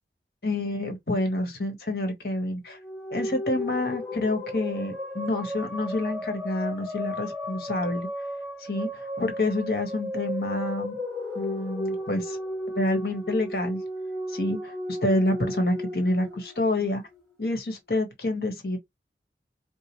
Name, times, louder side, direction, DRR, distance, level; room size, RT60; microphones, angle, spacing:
voice 1, 0.4-2.8 3.1-8.1 8.6-11.0 11.3-12.4 12.8-13.8 14.3-17.0 17.4-18.8, left 1 dB, 60° left, 1.4 m, -28 dB
sound 1, 2.7-17.2, left 1 dB, 5° left, 1.5 m, -34 dB
4.7 x 2.1 x 3.0 m
head